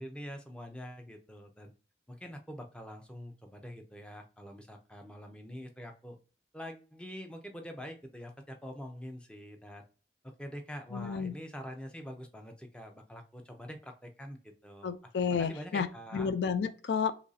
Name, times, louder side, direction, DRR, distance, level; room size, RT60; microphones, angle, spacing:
voice 1, 0.0-1.7 2.1-6.2 6.5-9.8 10.2-14.9 15.4-16.3, equal, 5° left, 0.4 m, -45 dB
voice 2, 10.9-11.3 14.8-17.1, left 6 dB, 75° left, 0.4 m, -31 dB
3.0 x 2.5 x 3.9 m
head